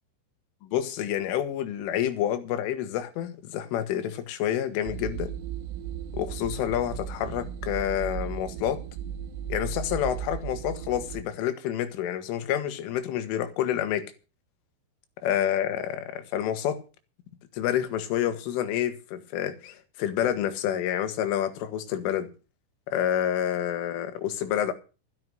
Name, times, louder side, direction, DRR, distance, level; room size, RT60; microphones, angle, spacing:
voice 1, 0.6-5.3 6.1-8.8 9.5-14.1 15.2-16.8 17.5-22.3 22.9-24.7, left 10 dB, 80° left, 3.9 m, -28 dB
sound 1, 4.8-11.2, right 9 dB, 85° right, 3.7 m, -36 dB
13.0 x 10.5 x 6.2 m
omnidirectional pair, 5.7 m